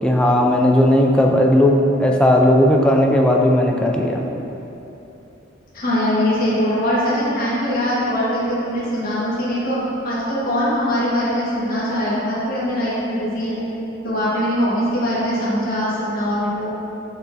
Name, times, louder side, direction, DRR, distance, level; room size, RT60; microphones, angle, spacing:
voice 1, 0.0-4.3, left 1 dB, 5° left, 0 dB, 0.3 m, -16 dB
voice 2, 5.7-9.8 10.0-13.6 14.0-16.7, equal, 50° left, -9 dB, 1.4 m, -22 dB
6.3 x 5.7 x 2.6 m, 3.0 s
head